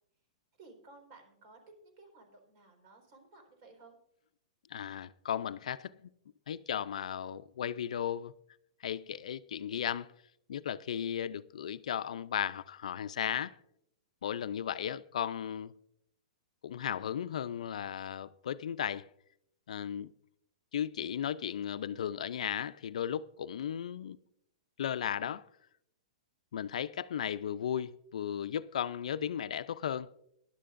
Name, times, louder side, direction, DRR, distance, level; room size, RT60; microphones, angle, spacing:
voice 1, 0.6-4.0, right 3 dB, 45° right, 4.3 m, -56 dB
voice 2, 4.7-5.9 6.5-8.3 8.8-10.1 10.5-13.5 14.2-15.7 16.6-19.1 19.7-20.1 20.7-24.2 24.8-25.4 26.5-30.1, left 9 dB, 80° left, 0.5 m, -35 dB
18.0 x 11.5 x 2.5 m
hypercardioid pair, 150°, 4 cm